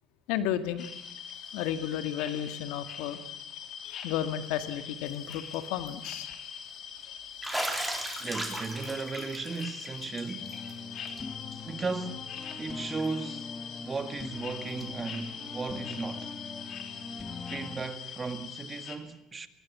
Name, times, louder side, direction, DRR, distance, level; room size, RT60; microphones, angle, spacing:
voice 1, 0.3-0.9 1.5-3.2 3.8-6.3, left 10 dB, 80° left, 1.9 m, -33 dB
sound 1, 0.8-19.0, left 7 dB, 50° left, 3.5 m, -42 dB
Bathtub (filling or washing), 5.1-5.5 5.9-6.0 7.4-10.7 11.1-11.2 11.5-11.6 13.0-13.1 14.8-14.9, right 1 dB, 5° right, 3.8 m, -36 dB
voice 2, 8.2-10.6 11.0-11.3 11.6-16.4 17.5-19.5, right 4 dB, 25° right, 1.9 m, -36 dB
sound 2, 10.4-17.8, left 4 dB, 20° left, 2.6 m, -42 dB
22.0 x 18.5 x 8.6 m
supercardioid pair, 100°, 0 cm